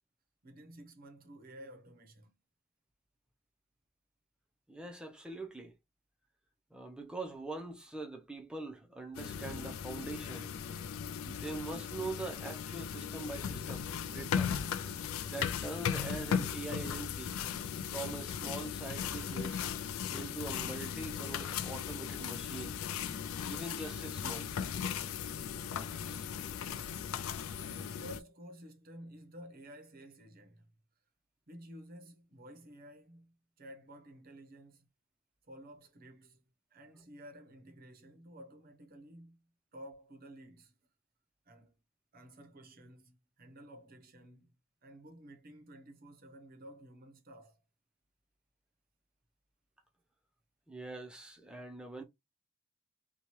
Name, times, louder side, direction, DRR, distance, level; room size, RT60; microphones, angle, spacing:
voice 1, 0.4-2.4 27.1-30.7 31.5-34.9 35.4-36.4 36.7-39.4 39.7-40.8 41.5-41.7 42.1-44.5 44.8-47.6, equal, 45° right, 0.7 m, -53 dB
voice 2, 4.7-5.7 6.7-10.5 11.2-14.6 15.3-17.4 17.9-19.7 20.1-22.8 23.4-24.6 26.1-26.3 50.7-52.0, right 3 dB, 5° right, 0.5 m, -43 dB
sound 1, 9.1-28.2, left 7 dB, 70° left, 0.3 m, -37 dB
2.8 x 2.2 x 3.0 m
head